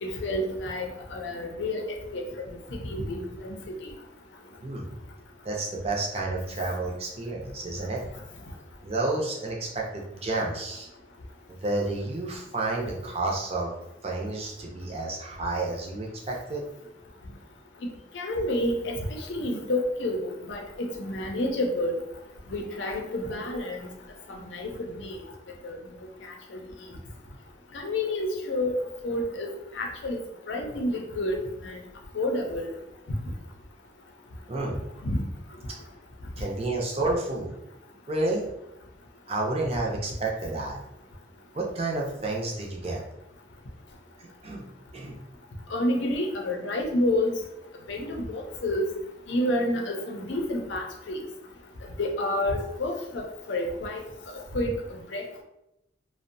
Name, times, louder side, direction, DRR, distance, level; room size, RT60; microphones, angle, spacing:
voice 1, 0.0-1.8 2.1-2.6 2.8-3.9 18.1-22.0 22.5-23.9 24.3-25.2 25.6-25.8 26.5-26.6 27.7-28.7 29.0-29.5 29.7-30.2 30.5-31.4 31.6-31.8 32.1-32.7 35.0-35.2 45.7-47.3 47.9-48.9 49.3-51.2 52.0-54.0 54.3-54.7 55.1-55.2, left 1 dB, 85° left, 2 dB, 0.5 m, -29 dB
voice 2, 5.4-8.0 8.8-10.9 11.5-13.8 14.0-16.7 34.5-34.8 36.4-37.5 38.1-38.4 39.3-40.8 41.5-43.0 44.2-44.7 44.9-45.2, right 2 dB, 35° right, -1 dB, 0.5 m, -30 dB
2.5 x 2.1 x 2.6 m, 0.85 s
head